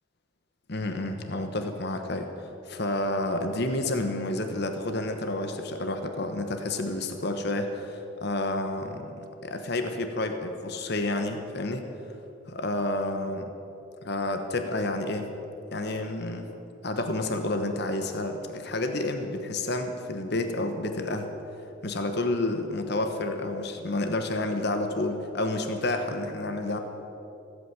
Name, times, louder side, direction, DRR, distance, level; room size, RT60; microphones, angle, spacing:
voice 1, 0.7-11.8 12.5-13.5 14.0-15.3 15.7-16.5 16.8-21.3 21.8-26.8, left 2 dB, 55° left, 6 dB, 1.2 m, -30 dB
16.0 x 8.6 x 9.3 m, 3.0 s
head